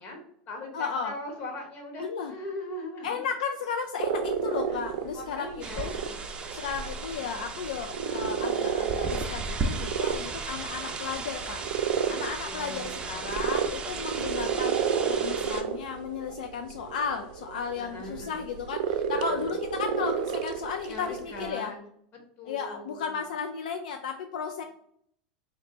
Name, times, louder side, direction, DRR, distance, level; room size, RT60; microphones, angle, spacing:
voice 1, 0.0-3.2 4.5-4.8 5.1-5.9 12.4-13.4 17.8-18.4 19.1-19.5 20.9-21.9 22.4-23.2, left 1 dB, 45° left, 1 dB, 1.4 m, -40 dB
voice 2, 0.7-1.2 2.0-2.3 3.0-5.9 6.5-11.6 12.1-21.7 22.4-24.6, left 6 dB, 85° left, 5 dB, 0.3 m, -34 dB
sound 1, 4.0-21.5, right 7 dB, 70° right, 0.5 m, -32 dB
sound 2, 5.6-15.6, right 3 dB, 25° right, 0.6 m, -36 dB
3.3 x 2.6 x 3.9 m, 0.70 s
hypercardioid pair, 110°, 4 cm